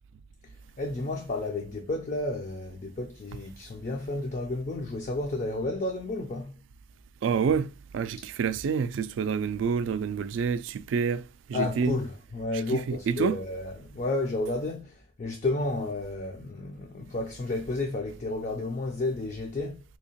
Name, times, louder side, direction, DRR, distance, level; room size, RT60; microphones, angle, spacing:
voice 1, 0.4-6.6 11.5-19.8, left 2 dB, 40° left, 0.4 m, -32 dB
voice 2, 7.2-11.2 11.5-12.0 12.5-13.4, right 6 dB, 75° right, 0.3 m, -28 dB
3.6 x 2.8 x 2.7 m
head